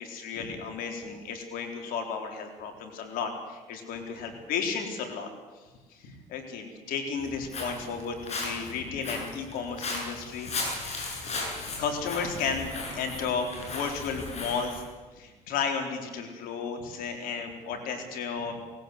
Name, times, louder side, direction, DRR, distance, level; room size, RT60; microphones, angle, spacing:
voice 1, 0.0-5.3 5.9-10.5 11.5-14.8 15.2-18.5, left 5 dB, 75° left, 4 dB, 4.1 m, -33 dB
Walk footsteps, 7.2-14.8, left 3 dB, 45° left, 7.6 m, -36 dB
19.5 x 17.5 x 8.0 m, 1.3 s
supercardioid pair, 80°, 15 cm